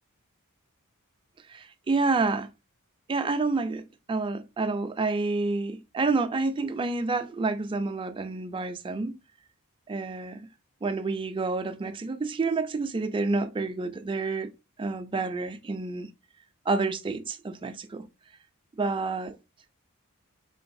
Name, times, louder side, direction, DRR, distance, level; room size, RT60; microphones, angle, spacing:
voice 1, 1.5-2.5 3.1-9.1 9.9-10.4 10.8-14.5 14.8-16.1 16.7-18.1 18.8-19.3, right 3 dB, 25° right, 0.4 m, -28 dB
3.8 x 3.8 x 2.6 m
head